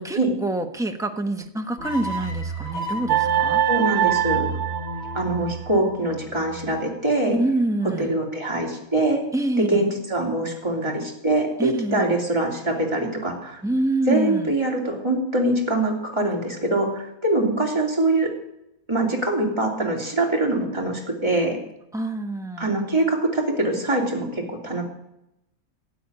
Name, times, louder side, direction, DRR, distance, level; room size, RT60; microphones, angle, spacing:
voice 1, 0.0-3.6 7.3-8.1 9.3-9.9 11.6-12.2 13.6-14.5 21.9-22.7, right 2 dB, 5° right, 5 dB, 0.8 m, -26 dB
sound 1, 1.8-7.0, right 1 dB, 50° left, 2.3 m, -33 dB
sound 2, 3.1-5.7, right 11 dB, 85° right, 1.4 m, -23 dB
voice 2, 3.7-4.5 5.1-7.4 8.0-9.2 9.6-13.6 14.1-18.3 18.9-21.6 22.6-24.8, right 2 dB, 20° right, -1 dB, 3.0 m, -23 dB
12.5 x 9.0 x 9.6 m, 0.85 s
omnidirectional pair, 1.5 m